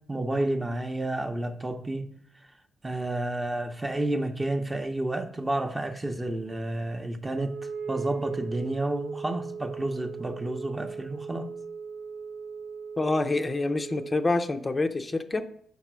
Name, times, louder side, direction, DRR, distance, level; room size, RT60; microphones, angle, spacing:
voice 1, 0.1-2.1 2.8-7.6 7.9-11.5, right 1 dB, 20° right, 0.7 m, -30 dB
Wind instrument woodwind instrument, 7.3-14.4, right 5 dB, 90° right, 0.7 m, -38 dB
voice 2, 13.0-15.5, left 2 dB, 25° left, 0.5 m, -27 dB
5.5 x 4.0 x 6.1 m
cardioid pair, 85°, 0 cm